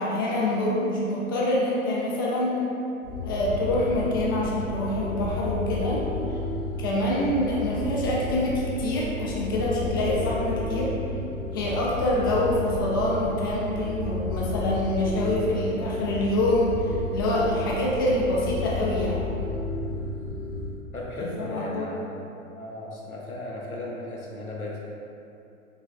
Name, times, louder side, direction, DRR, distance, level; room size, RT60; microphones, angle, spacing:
voice 1, 0.0-2.6 3.2-6.1 6.8-10.9 11.5-19.3 21.4-21.9, left 1 dB, 20° left, -5 dB, 0.3 m, -26 dB
sound 1, 3.0-20.8, left 2 dB, 55° left, 0.9 m, -32 dB
voice 2, 20.9-22.2 22.6-24.8, left 1 dB, 90° left, -3 dB, 0.9 m, -35 dB
7.1 x 3.1 x 2.3 m, 2.8 s
figure-of-eight pair, 100°, 42 cm